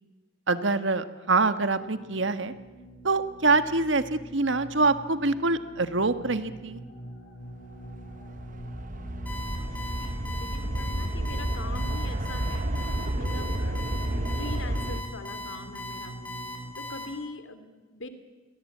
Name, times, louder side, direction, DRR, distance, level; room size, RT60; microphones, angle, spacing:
voice 1, 0.5-2.5 3.0-6.8, right 3 dB, 75° right, 11 dB, 1.6 m, -25 dB
sound 1, 1.5-16.7, equal, 70° left, 4.5 m, -44 dB
sound 2, 7.7-15.0, right 1 dB, 45° right, 1.1 m, -31 dB
voice 2, 9.2-12.6 13.1-16.2 16.8-18.1, left 3 dB, 85° left, 10 dB, 2.7 m, -43 dB
Alarm, 9.3-17.1, left 1 dB, 10° left, 7.4 m, -38 dB
29.0 x 23.0 x 8.6 m, 1.2 s
head